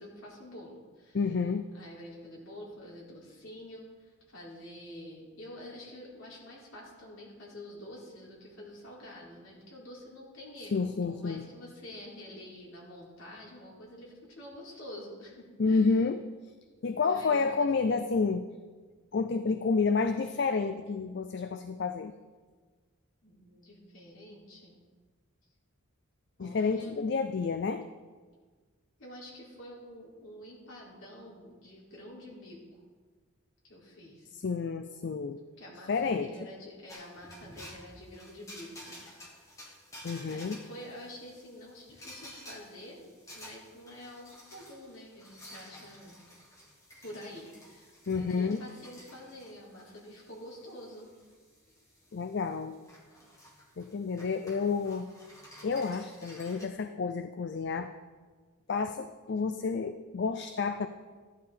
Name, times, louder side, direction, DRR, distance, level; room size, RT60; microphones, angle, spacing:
voice 1, 0.0-1.2 1.7-15.9 16.9-18.1 23.2-24.7 26.4-27.0 29.0-32.8 33.6-34.3 35.6-39.0 40.2-43.0 43.3-46.2 47.0-51.1, left 1 dB, 70° left, -5 dB, 3.7 m, -48 dB
voice 2, 1.1-1.7 10.7-11.4 15.6-16.2 16.8-18.5 19.1-22.1 26.4-27.9 34.4-35.4 35.9-36.3 40.0-40.6 48.1-48.6 52.1-52.8 53.8-55.1 55.6-57.9 58.7-60.9, left 4 dB, 55° left, 9 dB, 0.4 m, -30 dB
sound 1, 36.9-56.7, equal, 15° left, 1.8 m, -52 dB
14.0 x 11.0 x 3.8 m, 1.4 s
head